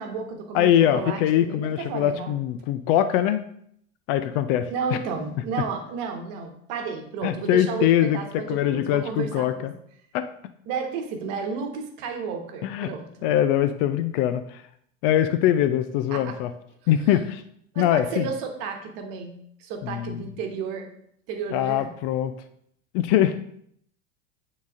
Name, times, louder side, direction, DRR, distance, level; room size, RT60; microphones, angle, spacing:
voice 1, 0.0-2.4 4.7-9.7 10.7-13.3 16.1-16.3 17.7-19.3 19.6-20.9 21.3-21.9, right 5 dB, 50° right, 4 dB, 1.3 m, -32 dB
voice 2, 0.5-3.4 4.1-5.0 7.2-9.7 10.1-10.3 12.6-12.9 13.2-14.6 15.0-16.5 16.9-17.4 17.8-18.3 19.8-20.3 21.5-22.3 22.9-23.3, left 11 dB, 45° left, 11 dB, 0.4 m, -22 dB
9.2 x 4.0 x 2.5 m, 0.68 s
figure-of-eight pair, 80°, 41 cm